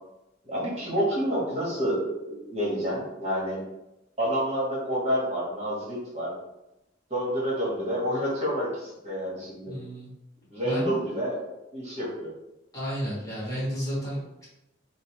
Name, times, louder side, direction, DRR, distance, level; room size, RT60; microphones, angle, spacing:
voice 1, 0.4-3.6 4.2-6.4 7.1-9.7 10.5-12.3, equal, 35° right, -6 dB, 1.2 m, -29 dB
voice 2, 9.6-10.1 10.6-11.0 12.7-14.5, equal, 20° left, -7 dB, 1.3 m, -32 dB
5.2 x 2.1 x 3.1 m, 0.90 s
head